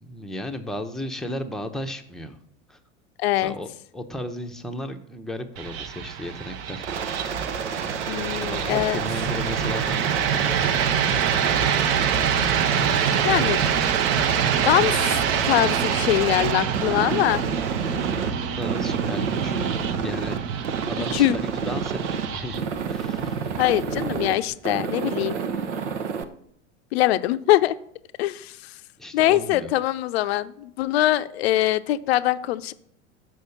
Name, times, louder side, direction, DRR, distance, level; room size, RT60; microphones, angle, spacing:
voice 1, 0.0-2.4 2.7-2.8 3.4-3.7 3.9-6.9 8.4-10.6 18.1-19.7 20.0-20.4 20.8-23.4 29.0-29.7, left 1 dB, ahead, 4 dB, 0.8 m, -34 dB
voice 2, 3.2-3.5 8.1-9.0 13.2-13.6 14.5-15.2 15.4-17.4 21.1-21.4 23.6-25.4 26.9-27.7 28.2-28.7 29.1-32.7, left 14 dB, 60° left, 14 dB, 0.6 m, -22 dB
sound 1, 5.6-24.5, right 8 dB, 40° right, 0.8 m, -26 dB
Aircraft, 6.8-18.3 18.6-20.4 20.6-22.3 22.5-24.3 24.7-26.2, right 6 dB, 70° right, 0.9 m, -30 dB
sound 2, 8.0-26.0, left 1 dB, 85° right, 2.3 m, -50 dB
6.4 x 6.2 x 7.0 m, 0.69 s
figure-of-eight pair, 80°, 36 cm